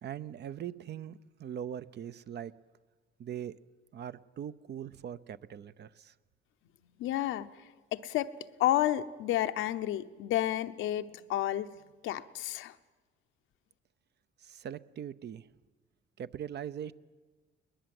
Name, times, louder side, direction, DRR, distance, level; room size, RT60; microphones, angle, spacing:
voice 1, 0.0-2.5 3.2-3.5 3.9-6.1 14.4-15.5 16.2-16.9, right 9 dB, 60° right, 15 dB, 0.7 m, -41 dB
voice 2, 7.0-8.3 8.6-11.7 12.0-12.8, left 13 dB, 90° left, 10 dB, 0.8 m, -31 dB
21.5 x 20.5 x 7.8 m, 1.3 s
cardioid pair, 90°, 20 cm